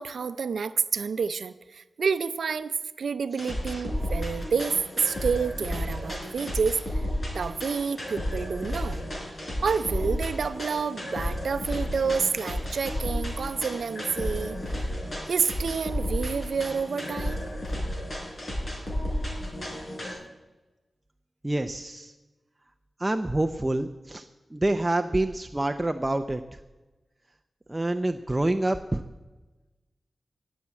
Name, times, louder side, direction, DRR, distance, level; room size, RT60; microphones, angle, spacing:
voice 1, 0.0-7.0 7.3-9.0 9.6-14.8 15.3-17.5, right 5 dB, 80° right, 13 dB, 0.5 m, -29 dB
sound 1, 3.4-20.1, left 1 dB, 40° left, 4.5 m, -32 dB
voice 2, 21.4-22.1 23.0-24.3 24.5-26.6 27.7-29.0, right 1 dB, 15° right, 6 dB, 0.5 m, -27 dB
18.0 x 7.2 x 7.6 m, 1.1 s
wide cardioid pair, 115°, 0 cm